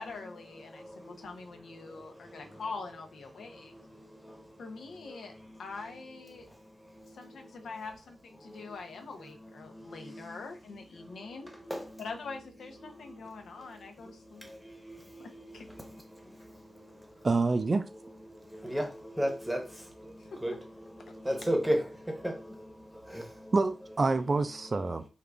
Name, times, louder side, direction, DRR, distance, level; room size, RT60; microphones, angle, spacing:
voice 1, 0.0-3.7 4.6-5.3 5.6-6.5 7.0-11.5 12.0-14.5 15.2-15.7 20.2-20.4 21.1-21.2, left 4 dB, 80° left, 0.6 m, -44 dB
voice 2, 0.7-1.3 1.7-2.6 3.4-4.6 5.1-5.6 6.4-7.5 8.4-8.7 9.6-10.4 11.0-11.2 11.4-12.0 12.8-17.3 18.3-23.5 24.8-24.9, equal, 5° right, 0.9 m, -38 dB
voice 3, 17.2-17.9 23.5-25.0, right 3 dB, 40° right, 0.3 m, -27 dB
3.6 x 2.3 x 3.3 m
wide cardioid pair, 105°, 0 cm